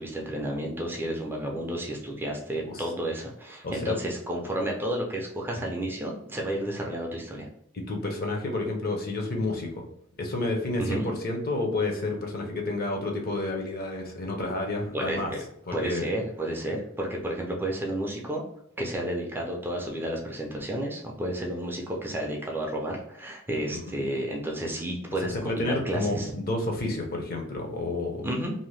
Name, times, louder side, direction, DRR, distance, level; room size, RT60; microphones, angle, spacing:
voice 1, 0.0-7.5 10.8-11.1 14.9-15.4 15.7-18.4 18.8-26.3 28.2-28.5, right 1 dB, 10° right, -1 dB, 0.4 m, -31 dB
voice 2, 3.6-3.9 7.7-9.9 10.2-15.3 15.7-16.1 23.7-23.8 25.3-28.2, left 2 dB, 45° left, 1 dB, 0.7 m, -30 dB
2.7 x 2.1 x 3.1 m, 0.75 s
head